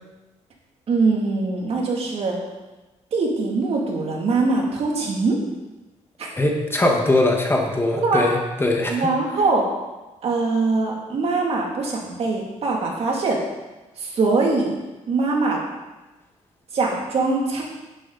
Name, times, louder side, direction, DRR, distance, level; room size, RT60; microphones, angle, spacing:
voice 1, 0.9-2.4 3.1-5.4 6.2-6.3 8.0-8.3 8.9-9.6 10.2-13.4 14.0-14.7 15.1-15.6 16.7-17.6, right 3 dB, 50° right, -1 dB, 2.8 m, -22 dB
voice 2, 6.4-9.1, left 2 dB, 20° left, 1 dB, 1.7 m, -21 dB
10.5 x 10.5 x 4.2 m, 1.1 s
cardioid pair, 110°, 13 cm